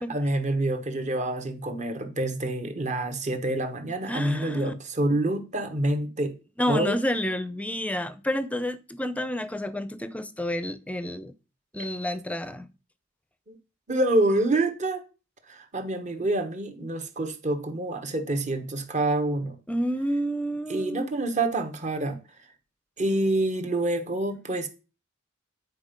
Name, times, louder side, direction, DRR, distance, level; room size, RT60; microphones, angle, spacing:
voice 1, 0.1-6.3 6.7-7.0 11.8-11.9 13.5-13.6 13.9-15.0 15.5-19.6 20.7-22.2 23.0-24.7, right 1 dB, 35° right, 1.3 m, -27 dB
voice 2, 4.1-4.7 6.6-11.3 11.7-12.7 19.7-21.1, equal, 5° left, 0.6 m, -29 dB
9.6 x 4.5 x 5.2 m
head